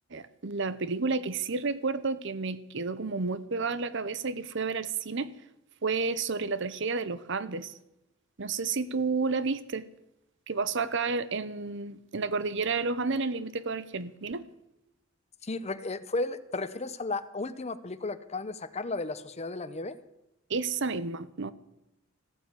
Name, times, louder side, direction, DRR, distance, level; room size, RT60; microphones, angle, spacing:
voice 1, 0.1-5.3 5.8-7.7 8.4-9.8 10.5-14.4 20.5-21.5, right 4 dB, 65° right, 15 dB, 0.9 m, -31 dB
voice 2, 15.4-20.0, left 3 dB, 35° left, 13 dB, 0.8 m, -34 dB
15.0 x 9.2 x 8.4 m, 0.87 s
head